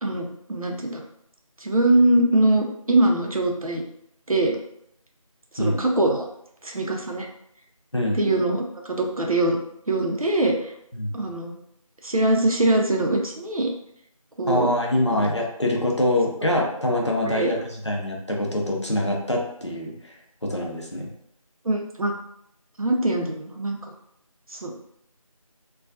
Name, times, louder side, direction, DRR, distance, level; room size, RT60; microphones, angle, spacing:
voice 1, 0.0-1.0 1.6-3.8 4.3-4.6 5.5-6.3 6.6-7.3 8.1-9.6 9.9-10.7 11.1-11.5 12.0-13.7 14.4-14.7 15.1-15.2 17.2-17.5 21.6-22.1 22.8-23.9 24.5-24.7, right 1 dB, 70° right, 1 dB, 0.6 m, -22 dB
voice 2, 7.9-8.3 10.9-11.3 14.5-17.6 17.8-20.1 20.4-21.1, left 1 dB, 50° left, -1 dB, 0.5 m, -24 dB
2.3 x 2.2 x 2.5 m, 0.72 s
figure-of-eight pair, 175°, 19 cm